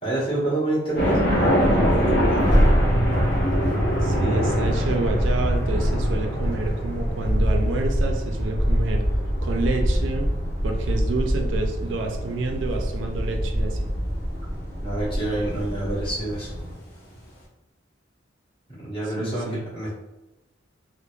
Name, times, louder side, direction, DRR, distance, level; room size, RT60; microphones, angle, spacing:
voice 1, 0.0-2.7 4.2-4.7 14.8-16.5 18.8-19.4 19.7-19.9, right 2 dB, 30° left, -9 dB, 1.2 m, -27 dB
sound 1, 0.9-16.1, equal, 60° left, 0.8 m, -24 dB
Accelerating revving vroom, 1.0-16.7, equal, 25° right, 0.8 m, -29 dB
voice 2, 4.0-9.0 9.4-10.3 10.6-13.9 19.2-19.6, right 3 dB, 80° right, 3 dB, 0.4 m, -29 dB
3.0 x 2.0 x 2.3 m, 0.99 s
head